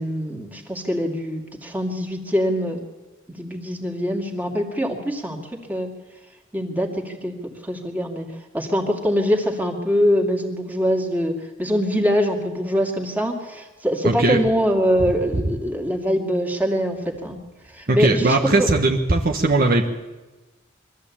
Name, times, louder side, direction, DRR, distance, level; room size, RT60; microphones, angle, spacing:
voice 1, 0.0-2.8 3.4-5.4 5.7-5.9 6.5-8.3 8.5-17.4 17.7-18.7, equal, 10° right, 1 dB, 2.5 m, -23 dB
voice 2, 14.0-14.4 15.3-15.4 17.9-19.9, right 2 dB, 50° right, 1 dB, 1.3 m, -19 dB
23.0 x 14.0 x 8.6 m, 1.2 s
head